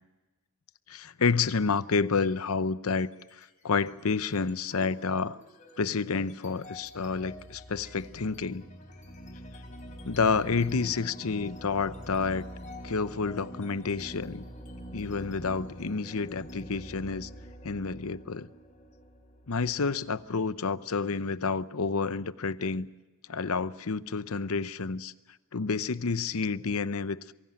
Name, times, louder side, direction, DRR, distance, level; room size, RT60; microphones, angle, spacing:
voice 1, 0.9-5.4 5.8-8.6 10.0-12.5 12.8-14.4 14.9-17.3 17.6-18.5 19.5-22.9 23.3-25.1 25.5-27.3, left 4 dB, 75° left, 0.8 m, -29 dB
sound 1, 2.9-3.4 3.8-20.4, equal, 35° left, 3.7 m, -46 dB
24.0 x 17.0 x 8.8 m
head